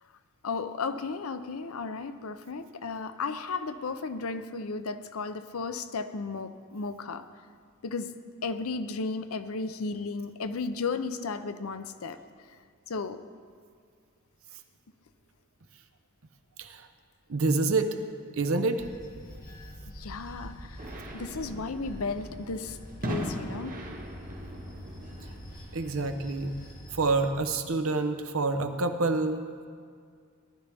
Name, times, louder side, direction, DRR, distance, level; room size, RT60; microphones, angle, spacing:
voice 1, 0.4-7.2 7.8-8.1 8.4-12.2 12.9-13.2 19.9-23.7, left 4 dB, 85° left, 11 dB, 0.7 m, -34 dB
voice 2, 17.3-17.9 18.4-18.8 25.7-26.5 26.9-29.7, right 3 dB, 70° right, 7 dB, 0.9 m, -27 dB
Bell / Train, 18.8-27.3, equal, 40° left, 2.0 m, -45 dB
sound 1, 20.8-26.0, equal, 40° right, 1.6 m, -40 dB
19.0 x 12.0 x 3.5 m, 2.1 s
head